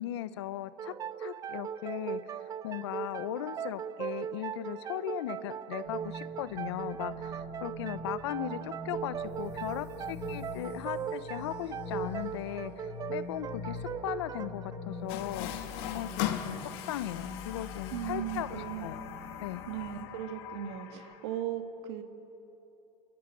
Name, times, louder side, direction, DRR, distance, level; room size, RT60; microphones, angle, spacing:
voice 1, 0.0-15.5 15.9-19.0 19.4-19.7, left 13 dB, 90° left, 14 dB, 1.0 m, -38 dB
sound 1, 0.8-16.1, right 8 dB, 25° right, 0.5 m, -39 dB
sound 2, 5.8-20.0, left 2 dB, 20° left, 5.5 m, -43 dB
Water tap faucet, 15.1-21.4, left 11 dB, 70° left, 2.0 m, -40 dB
voice 2, 17.9-18.9 19.7-22.0, right 11 dB, 80° right, 7 dB, 2.1 m, -37 dB
29.5 x 13.5 x 10.0 m, 2.9 s
supercardioid pair, 125°, 14 cm